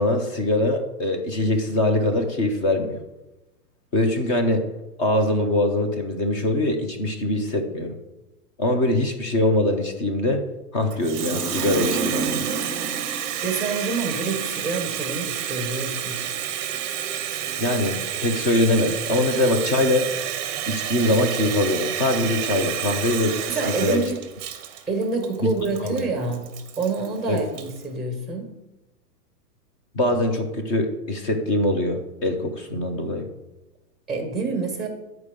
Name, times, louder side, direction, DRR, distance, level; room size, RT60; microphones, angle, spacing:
voice 1, 0.0-3.0 3.9-4.6 5.0-8.0 8.6-10.4 10.7-12.4 17.6-20.1 20.7-24.0 25.4-25.5 25.8-26.0 27.3-27.4 29.9-33.3, left 1 dB, 20° left, 5 dB, 0.6 m, -23 dB
Water tap faucet, 10.9-27.8, right 8 dB, 30° right, 0.8 m, -29 dB
voice 2, 13.4-16.2 23.5-24.2 24.9-26.4 26.8-28.5 34.1-34.9, right 3 dB, ahead, 3 dB, 1.3 m, -27 dB
8.7 x 4.6 x 5.1 m, 1.0 s
hypercardioid pair, 150°, 48 cm